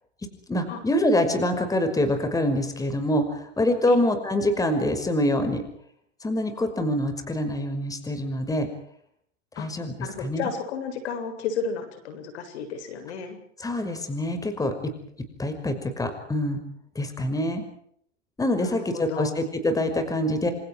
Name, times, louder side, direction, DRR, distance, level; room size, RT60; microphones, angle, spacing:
voice 1, 0.5-5.6 6.2-8.7 9.6-9.9 10.2-10.5 13.6-14.7 15.4-16.6 17.0-17.6 18.4-20.5, left 1 dB, 10° left, 7 dB, 5.8 m, -25 dB
voice 2, 10.0-13.4 18.6-19.3, left 6 dB, 65° left, 8 dB, 7.8 m, -32 dB
28.5 x 28.0 x 4.9 m, 0.67 s
hypercardioid pair, 115°, 36 cm